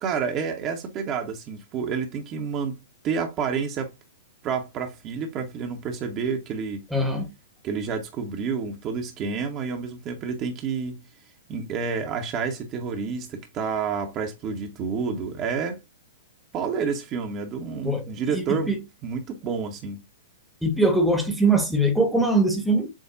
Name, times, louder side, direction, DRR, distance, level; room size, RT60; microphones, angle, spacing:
voice 1, 0.0-2.8 3.0-3.9 4.4-6.9 7.6-11.0 11.5-15.8 16.5-18.7 19.0-20.0, right 6 dB, 30° right, 1.0 m, -29 dB
voice 2, 6.9-7.3 17.8-18.8 20.6-22.9, right 2 dB, 5° right, 1.1 m, -22 dB
7.3 x 2.5 x 2.4 m
figure-of-eight pair, 105°, 0 cm